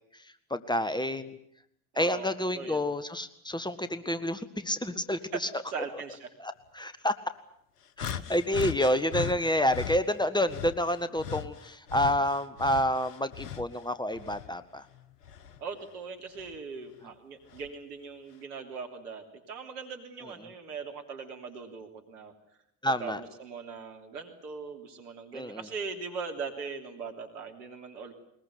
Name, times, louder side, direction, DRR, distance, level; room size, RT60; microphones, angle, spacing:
voice 1, 0.5-1.4 2.0-5.5 6.4-7.1 8.0-14.8 22.8-23.2 25.3-25.6, left 1 dB, 10° left, 12 dB, 1.8 m, -29 dB
voice 2, 1.9-2.9 5.3-5.4 5.7-6.3 15.6-22.3 23.0-28.1, right 5 dB, 80° right, 4 dB, 3.3 m, -40 dB
sound 1, 8.0-10.0 10.5-13.8 14.1-15.6 16.4-16.6 17.5-17.7, left 9 dB, 85° left, 1.1 m, -38 dB
21.5 x 21.0 x 9.6 m, 0.71 s
hypercardioid pair, 60°, 46 cm